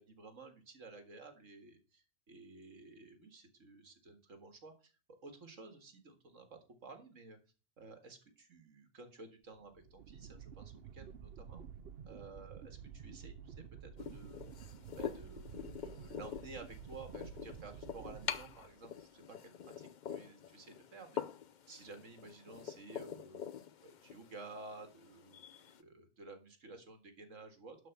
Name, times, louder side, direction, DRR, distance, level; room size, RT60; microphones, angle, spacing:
voice 1, 0.0-4.9 5.2-7.4 7.8-11.6 12.1-14.5 15.0-21.2 21.7-23.4 23.8-25.4 25.8-27.8, right 3 dB, 90° right, 6 dB, 2.2 m, -53 dB
sound 1, 9.5-19.0, right 7 dB, 60° right, 0.8 m, -51 dB
sound 2, 14.0-25.8, left 8 dB, 50° left, 0.6 m, -46 dB
12.0 x 4.8 x 6.7 m, 0.33 s
omnidirectional pair, 1.3 m